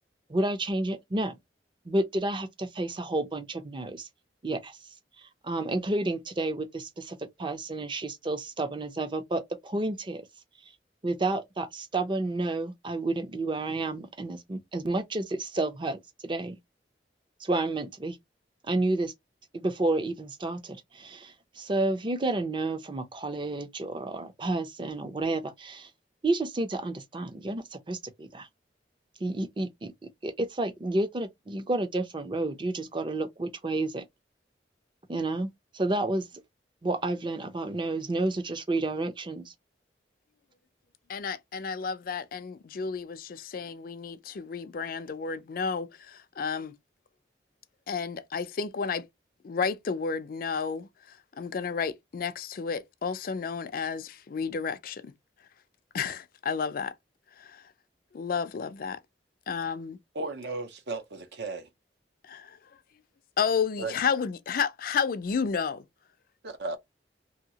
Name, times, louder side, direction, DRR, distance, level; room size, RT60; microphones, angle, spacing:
voice 1, 0.3-1.4 1.9-4.1 4.4-4.8 5.4-10.2 11.0-16.6 17.4-18.2 18.6-19.1 19.5-25.9 26.2-28.5 29.2-34.0 35.1-35.5 35.7-36.3 36.8-39.5, right 2 dB, 30° right, 0.5 m, -30 dB
voice 2, 41.1-46.7 47.9-49.0 49.4-50.9 51.4-55.1 55.9-56.9 57.5-57.6 58.1-59.0 59.5-60.0 62.3-62.5 63.4-65.8, left 6 dB, 55° left, 0.4 m, -31 dB
voice 3, 60.1-61.7 63.8-63.9 66.4-66.8, right 3 dB, 70° right, 0.7 m, -35 dB
2.8 x 2.7 x 2.7 m
head